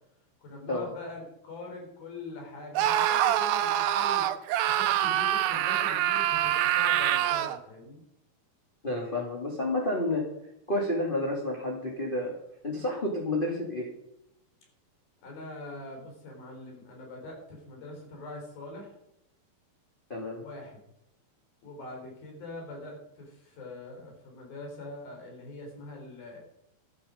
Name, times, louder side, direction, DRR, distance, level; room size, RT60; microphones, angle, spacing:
voice 1, 0.4-8.0 15.2-18.9 20.4-20.8 21.6-26.4, left 2 dB, 75° left, 1 dB, 5.9 m, -43 dB
Screaming, 2.7-7.6, right 12 dB, 85° right, 2.6 m, -25 dB
voice 2, 8.8-10.2 10.7-12.3 12.6-13.9 20.1-20.4, left 1 dB, 20° left, -3 dB, 1.8 m, -30 dB
13.5 x 12.0 x 5.2 m, 0.80 s
omnidirectional pair, 4.2 m